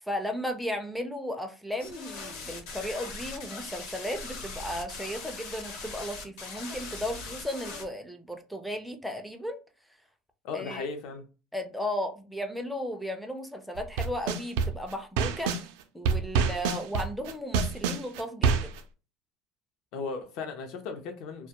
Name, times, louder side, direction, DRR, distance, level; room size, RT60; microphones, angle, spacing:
voice 1, 0.1-9.6 10.5-10.9 11.5-15.5 15.9-18.7, left 1 dB, ahead, 0.4 m, -35 dB
sound 1, 1.8-7.8, left 4 dB, 90° left, 0.8 m, -40 dB
voice 2, 10.4-11.3 19.9-21.5, left 4 dB, 55° left, 0.5 m, -36 dB
sound 2, 13.8-15.6 16.1-18.8, right 5 dB, 80° right, 0.4 m, -26 dB
2.2 x 2.1 x 2.8 m
cardioid pair, 160°, 0 cm